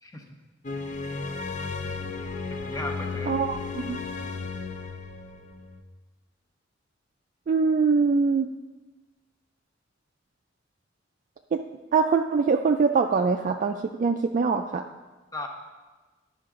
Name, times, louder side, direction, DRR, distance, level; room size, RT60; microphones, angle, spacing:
sound 1, 0.6-5.8, left 4 dB, 40° left, 0.5 m, -34 dB
voice 1, 2.5-3.4 15.3-15.5, left 2 dB, 20° left, 1 dB, 0.9 m, -36 dB
voice 2, 3.3-4.0 7.5-8.5 11.5-11.6 11.9-14.8, right 5 dB, 45° right, 5 dB, 0.3 m, -23 dB
10.5 x 5.7 x 3.7 m, 1.2 s
head